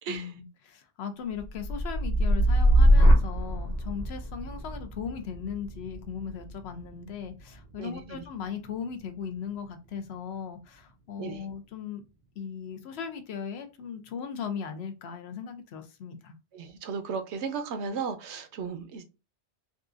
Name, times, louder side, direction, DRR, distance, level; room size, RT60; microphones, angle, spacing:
voice 1, 0.1-12.0 12.4-16.3, left 7 dB, 70° left, 0.8 m, -38 dB
sound 1, 1.3-9.4 9.8-10.3, equal, 40° left, 1.0 m, -25 dB
voice 2, 7.8-8.2 11.2-11.5 16.5-19.0, right 5 dB, 80° right, 0.9 m, -35 dB
3.8 x 2.4 x 2.4 m
omnidirectional pair, 1.1 m